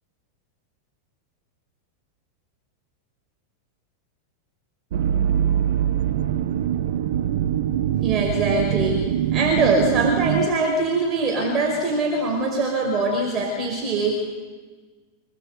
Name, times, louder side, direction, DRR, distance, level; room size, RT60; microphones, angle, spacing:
sound 1, 4.9-10.5, right 10 dB, 55° right, 1.2 m, -23 dB
voice 1, 8.0-14.1, right 2 dB, 25° right, 1 dB, 5.3 m, -23 dB
26.5 x 19.5 x 8.2 m, 1.4 s
figure-of-eight pair, 90°, 0 cm